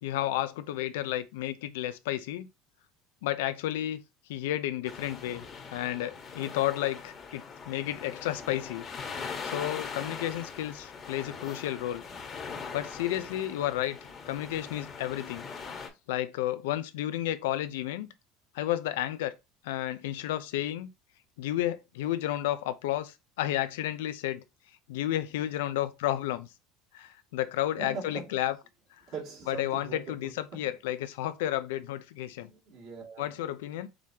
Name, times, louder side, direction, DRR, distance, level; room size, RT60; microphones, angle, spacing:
voice 1, 0.0-2.5 3.2-4.0 4.3-5.4 5.7-8.8 9.4-12.0 12.7-14.0 14.3-15.4 16.1-18.1 18.5-19.3 19.6-20.9 21.4-24.4 24.9-26.5 26.9-28.5 29.5-32.5 33.2-33.9, left 13 dB, 85° left, 0.5 m, -32 dB
sound 1, 4.9-15.9, left 5 dB, 35° left, 1.3 m, -41 dB
voice 2, 27.8-28.4 29.1-30.7 32.4-33.4, right 4 dB, 60° right, 2.4 m, -42 dB
4.9 x 3.5 x 2.8 m
supercardioid pair, 95°, 0 cm